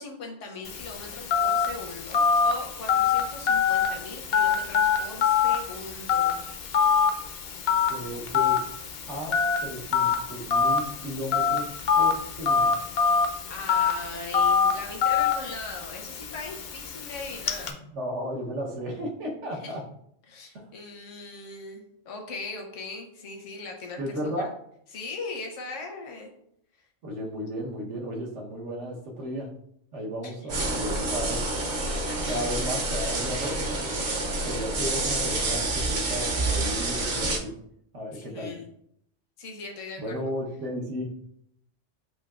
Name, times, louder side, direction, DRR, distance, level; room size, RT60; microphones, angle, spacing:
voice 1, 0.0-6.4 13.5-17.8 19.5-19.8 20.3-24.5 24.9-26.3 30.2-30.8 32.2-32.6 38.0-38.7 39.4-40.2, left 3 dB, 75° left, 2 dB, 1.2 m, -39 dB
Telephone, 0.7-17.7, left 6 dB, 60° left, 0.7 m, -25 dB
voice 2, 7.9-8.6 9.1-11.7 11.9-12.8 17.7-19.8 20.5-20.7 24.0-24.5 27.0-29.5 29.9-31.4 32.2-33.9 34.4-37.5 37.9-38.5 40.0-41.1, equal, 70° right, -1 dB, 1.3 m, -34 dB
sound 1, 30.5-37.4, right 2 dB, 50° right, 0.6 m, -28 dB
7.8 x 2.7 x 2.4 m, 0.71 s
omnidirectional pair, 1.3 m